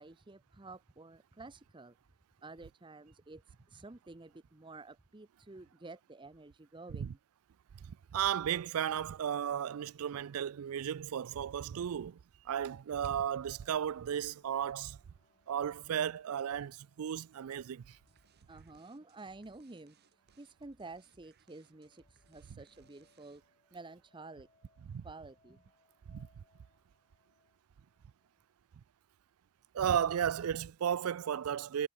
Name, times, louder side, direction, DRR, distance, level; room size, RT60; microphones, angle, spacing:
voice 1, 0.0-2.0 2.4-7.2 18.5-23.4 23.7-24.5 25.0-25.6, right 3 dB, 20° right, 0.7 m, -51 dB
voice 2, 7.8-12.2 12.4-15.0 15.5-18.0 24.8-25.0 26.1-26.4 29.7-31.9, right 9 dB, 85° right, 0.4 m, -34 dB
sound 1, 12.9-28.5, left 3 dB, 30° left, 6.1 m, -73 dB
sound 2, 17.9-23.7, right 4 dB, 50° right, 5.7 m, -69 dB
head